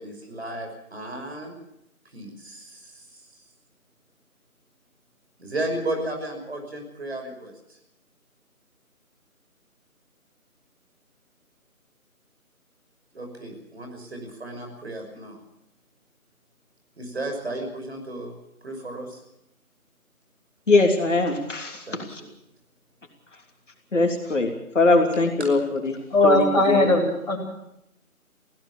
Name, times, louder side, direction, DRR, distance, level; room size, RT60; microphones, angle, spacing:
voice 1, 0.0-1.5 2.1-3.2 5.4-7.8 13.1-15.4 17.0-18.4 18.6-19.2 21.9-22.3 25.4-25.5, right 1 dB, 45° right, 4 dB, 6.0 m, -34 dB
voice 2, 20.7-22.2 23.9-26.0 26.2-26.9, left 2 dB, 55° left, 3 dB, 3.2 m, -22 dB
voice 3, 26.1-27.4, left 2 dB, 30° left, -6 dB, 4.6 m, -19 dB
22.0 x 17.0 x 7.3 m, 0.79 s
figure-of-eight pair, 165°, 44 cm